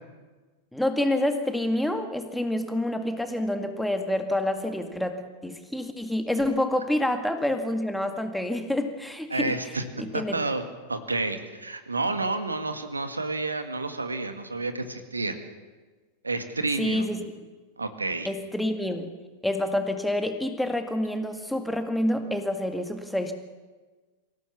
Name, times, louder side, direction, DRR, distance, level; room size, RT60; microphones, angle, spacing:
voice 1, 0.7-9.6 10.0-10.4 16.8-17.2 18.2-19.1 19.4-23.3, left 1 dB, 5° left, 6 dB, 2.0 m, -27 dB
voice 2, 9.3-9.8 10.1-10.6 10.9-15.3 16.2-17.0 17.8-18.3, right 3 dB, 80° right, 8 dB, 1.8 m, -30 dB
25.5 x 16.5 x 7.2 m, 1.3 s
figure-of-eight pair, 90°, 0 cm